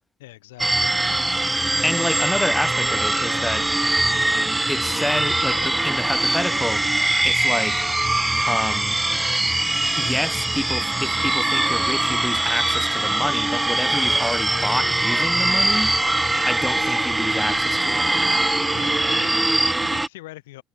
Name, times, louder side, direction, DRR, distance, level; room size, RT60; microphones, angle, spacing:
voice 1, 0.2-1.0 18.7-20.6, left 18 dB, 85° left, 7.9 m, -42 dB
sound 1, 0.6-20.1, right 2 dB, 10° right, 1.7 m, -22 dB
voice 2, 1.8-3.7 4.7-6.8 7.2-7.8 8.4-9.0 9.9-15.9 16.4-18.5, left 1 dB, 5° left, 1.5 m, -28 dB
hypercardioid pair, 70°, 0 cm